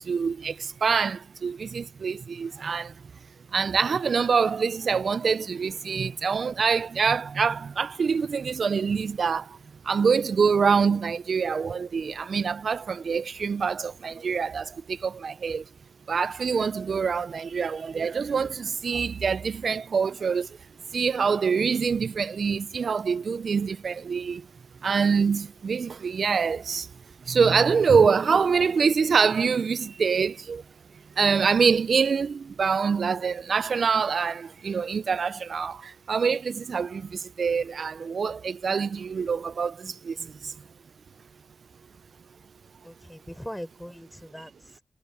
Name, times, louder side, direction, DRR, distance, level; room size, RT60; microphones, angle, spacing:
voice 1, 0.0-2.9 3.5-9.6 9.8-15.6 16.1-20.6 20.9-24.5 24.8-26.9 27.3-30.6 31.2-40.6, right 5 dB, 65° right, 0.3 m, -25 dB
voice 2, 42.8-44.8, equal, 5° left, 5.0 m, -40 dB
wide cardioid pair, 135°, 0 cm